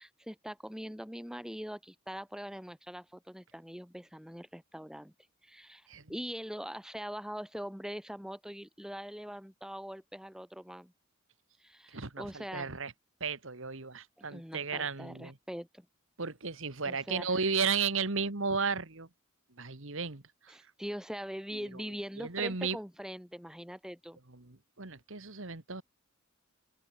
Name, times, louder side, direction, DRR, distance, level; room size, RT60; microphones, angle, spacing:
voice 1, 0.0-5.1 5.4-10.9 11.6-12.7 14.3-15.9 16.8-17.6 20.5-24.2, equal, 5° right, 3.2 m, -42 dB
voice 2, 11.9-12.9 13.2-15.3 16.2-19.1 19.6-20.5 21.5-21.8 22.2-22.8 24.3-25.8, right 5 dB, 65° right, 1.9 m, -34 dB
open air
head